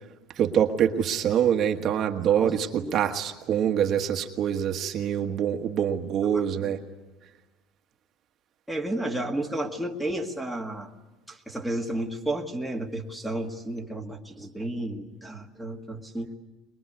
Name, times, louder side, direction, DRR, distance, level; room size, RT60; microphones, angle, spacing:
voice 1, 0.4-6.8, right 9 dB, 40° right, 5 dB, 1.3 m, -25 dB
voice 2, 2.4-3.0 6.3-6.7 8.7-10.9 11.3-16.4, right 1 dB, ahead, 5 dB, 1.8 m, -32 dB
22.0 x 22.0 x 9.5 m, 1.1 s
cardioid pair, 150°, 0 cm